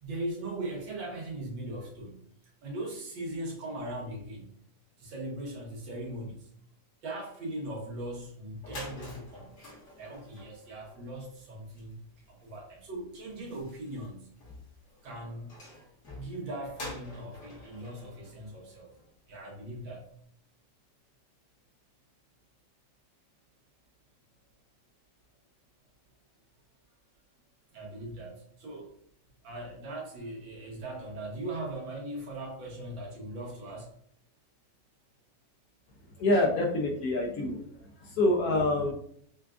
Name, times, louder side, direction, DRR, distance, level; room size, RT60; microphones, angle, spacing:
voice 1, 0.0-2.3 2.6-4.5 5.0-6.5 7.0-9.6 10.0-12.0 12.3-14.3 15.0-15.5 16.1-18.9 19.3-20.1 27.7-28.9 29.4-33.9, right 1 dB, 85° right, -2 dB, 1.8 m, -39 dB
sound 1, 8.5-19.3, left 1 dB, 45° left, 1.6 m, -48 dB
voice 2, 36.2-37.6 38.0-38.9, left 2 dB, 70° left, 1 dB, 0.9 m, -26 dB
5.8 x 2.3 x 2.4 m, 0.65 s
omnidirectional pair, 2.0 m